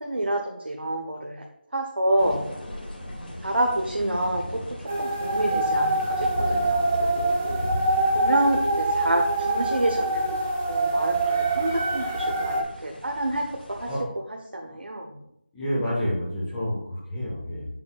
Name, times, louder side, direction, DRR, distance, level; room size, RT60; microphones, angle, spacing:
voice 1, 0.0-1.4 1.7-2.4 3.4-7.7 8.1-10.4 10.7-13.9 14.5-15.2, right 1 dB, 80° right, 1 dB, 1.2 m, -28 dB
sound 1, 2.2-14.0, left 1 dB, 65° left, 2.6 m, -38 dB
sound 2, 4.9-12.6, right 2 dB, 15° right, 0.5 m, -25 dB
voice 2, 15.5-17.7, equal, 5° left, -9 dB, 1.4 m, -29 dB
8.3 x 7.4 x 2.5 m, 0.75 s
figure-of-eight pair, 175°, 6 cm